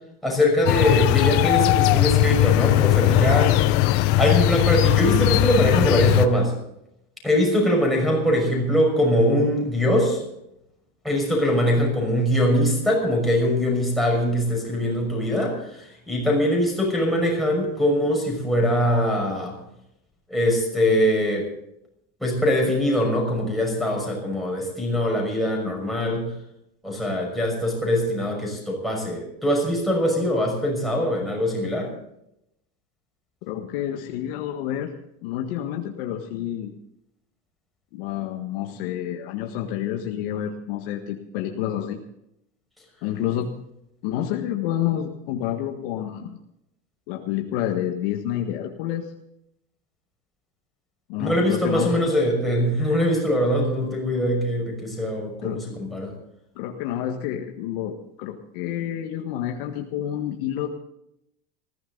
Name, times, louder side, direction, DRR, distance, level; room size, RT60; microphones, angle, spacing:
voice 1, 0.2-3.7 4.2-6.5 7.2-10.2 11.0-19.6 20.3-21.5 22.2-26.3 26.8-31.9 51.2-56.1, equal, ahead, -2 dB, 6.0 m, -22 dB
sound 1, 0.7-6.3, left 16 dB, 55° left, 0.9 m, -19 dB
voice 2, 33.5-34.9 35.2-36.7 37.9-42.0 43.0-43.5 44.0-46.4 47.1-49.1 51.1-52.0 55.4-55.7 56.5-60.7, left 11 dB, 70° left, 3 dB, 1.7 m, -29 dB
20.0 x 15.5 x 4.0 m, 0.80 s
cardioid pair, 160°, 30 cm